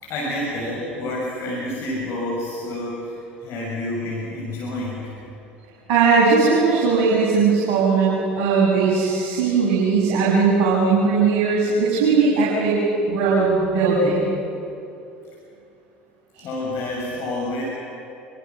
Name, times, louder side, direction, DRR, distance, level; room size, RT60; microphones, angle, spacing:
voice 1, 0.0-3.2 3.4-5.2 16.4-17.6, left 1 dB, 50° left, -4 dB, 7.0 m, -28 dB
voice 2, 5.9-12.8 13.1-14.3 16.4-16.5, right 4 dB, 55° right, -6 dB, 7.3 m, -18 dB
27.0 x 26.0 x 6.3 m, 2.7 s
figure-of-eight pair, 70°, 6 cm